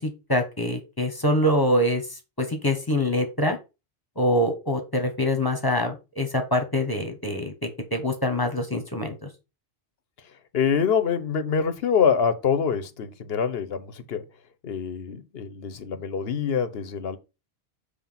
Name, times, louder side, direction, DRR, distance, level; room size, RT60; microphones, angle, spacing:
voice 1, 0.0-2.0 2.4-3.6 4.2-9.3, left 1 dB, 20° left, 1.3 m, -25 dB
voice 2, 10.5-14.2 14.6-17.2, left 6 dB, 65° left, 1.1 m, -25 dB
7.4 x 3.3 x 5.7 m
omnidirectional pair, 1.1 m